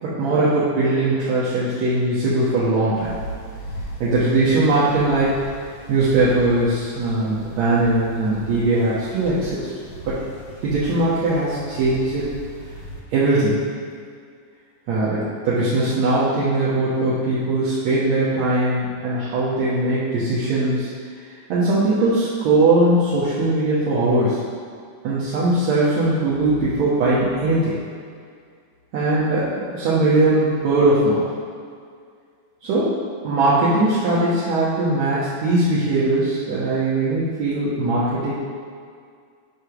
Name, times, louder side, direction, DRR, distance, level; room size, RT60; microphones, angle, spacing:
voice 1, 0.0-3.1 4.0-5.3 5.9-9.6 10.0-10.2 10.6-12.3 13.1-13.6 14.9-20.9 21.5-24.4 25.0-27.8 28.9-31.3 32.6-33.0 33.2-38.3, right 2 dB, 70° right, -10 dB, 2.4 m, -20 dB
sound 1, 2.9-13.0, equal, 60° left, 1.3 m, -37 dB
9.7 x 3.5 x 6.0 m, 2.2 s
omnidirectional pair, 3.4 m